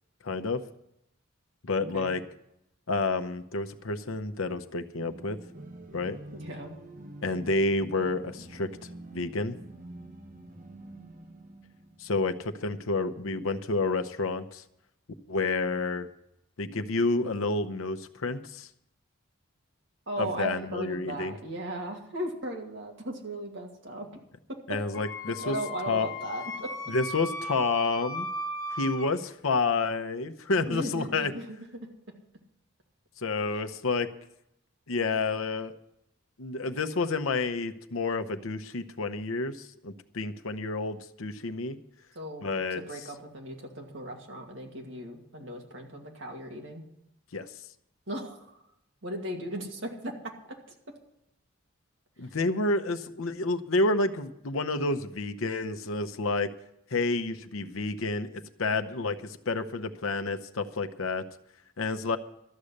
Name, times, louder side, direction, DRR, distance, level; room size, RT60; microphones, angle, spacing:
voice 1, 0.2-0.6 1.6-2.2 2.9-5.4 5.9-6.2 7.2-8.7 9.1-9.6 12.0-14.6 15.3-16.1 16.6-18.7 20.2-21.3 24.7-25.6 25.9-26.1 26.9-28.3 28.8-31.3 33.2-34.1 34.9-35.7 36.4-41.8 42.4-42.8 47.3-47.5 52.2-56.5 56.9-61.2 61.8-62.2, left 3 dB, 75° left, 9 dB, 0.8 m, -29 dB
voice 2, 1.8-2.1 6.3-6.8 20.1-24.2 25.4-26.7 30.6-31.6 42.2-42.4 42.8-46.8 48.1-48.6 49.0-50.1, right 1 dB, 60° right, 1 dB, 2.3 m, -37 dB
sound 1, 5.0-12.6, right 1 dB, 40° right, 1.1 m, -47 dB
Wind instrument woodwind instrument, 24.9-29.1, left 1 dB, 20° left, 1.4 m, -36 dB
13.0 x 6.6 x 9.9 m, 0.81 s
head